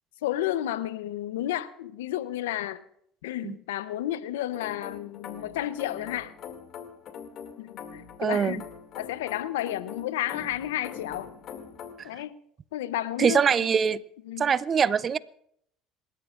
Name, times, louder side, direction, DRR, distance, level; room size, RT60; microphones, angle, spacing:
voice 1, 0.2-2.8 3.2-6.3 7.6-8.6 8.9-11.3 12.0-12.4 12.7-13.4 14.3-14.5, left 13 dB, 90° left, 0.7 m, -32 dB
sound 1, 4.5-11.9, left 7 dB, 60° left, 2.3 m, -43 dB
voice 2, 8.2-8.6 12.0-12.1 13.2-14.0 14.4-15.2, right 7 dB, 40° right, 0.6 m, -23 dB
27.5 x 13.5 x 2.5 m
hypercardioid pair, 75°, 0 cm